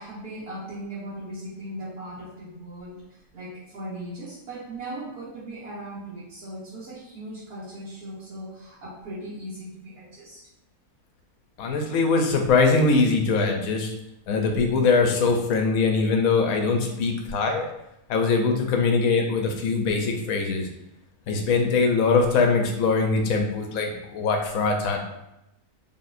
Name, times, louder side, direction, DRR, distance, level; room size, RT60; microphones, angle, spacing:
voice 1, 0.0-10.4 12.0-12.1 23.8-24.0, right 1 dB, 90° right, -10 dB, 1.6 m, -38 dB
voice 2, 11.6-13.9 14.3-17.7 18.1-20.7 21.3-25.2, left 4 dB, 70° left, 3 dB, 1.0 m, -22 dB
4.1 x 3.4 x 2.6 m, 0.86 s
omnidirectional pair, 1.6 m